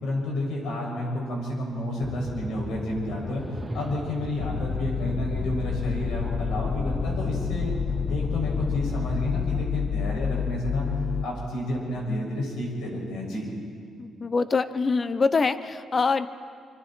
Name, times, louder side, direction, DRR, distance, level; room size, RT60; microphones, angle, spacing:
voice 1, 0.0-3.4 3.7-7.7 8.1-10.9 11.2-13.5, left 1 dB, 80° left, -1 dB, 6.7 m, -30 dB
sound 1, 2.0-9.7, left 1 dB, 10° left, 0.6 m, -37 dB
sound 2, 3.2-4.4, right 1 dB, 20° right, 2.5 m, -39 dB
sound 3, 4.4-11.2, left 6 dB, 65° left, 1.0 m, -29 dB
voice 2, 14.0-16.3, left 4 dB, 35° left, 13 dB, 0.9 m, -24 dB
26.0 x 25.5 x 4.5 m, 2.3 s
cardioid pair, 90°, 0 cm